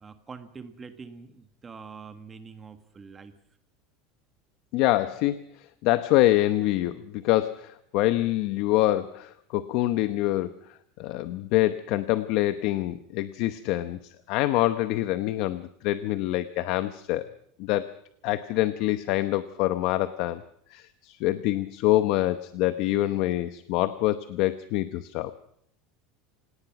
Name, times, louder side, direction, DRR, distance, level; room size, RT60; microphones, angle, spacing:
voice 1, 0.0-3.4, right 5 dB, 15° right, 9 dB, 1.5 m, -44 dB
voice 2, 4.7-10.5 11.0-17.3 17.6-18.0 18.2-20.4 20.7-25.3, left 15 dB, 50° left, 12 dB, 0.9 m, -25 dB
27.5 x 18.0 x 5.9 m, 0.70 s
supercardioid pair, 170°, 0 cm